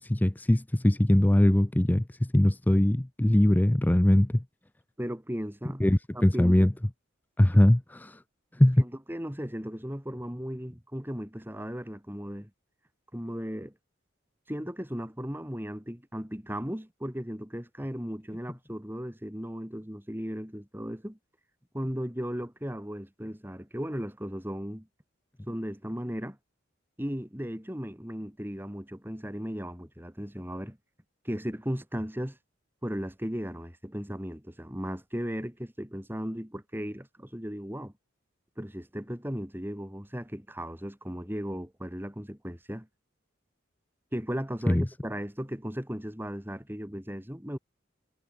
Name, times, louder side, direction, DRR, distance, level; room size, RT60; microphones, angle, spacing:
voice 1, 0.0-4.4 5.8-6.7 7.4-8.2 8.6-8.8 44.7-44.9, left 1 dB, 10° left, 0.4 m, -22 dB
voice 2, 5.0-5.8 6.1-6.7 7.4-7.5 8.8-12.5 13.1-13.7 14.5-21.2 21.7-24.9 25.5-26.4 27.0-30.8 31.2-32.4 32.8-37.9 38.6-42.9 44.1-47.6, equal, 10° right, 2.8 m, -36 dB
head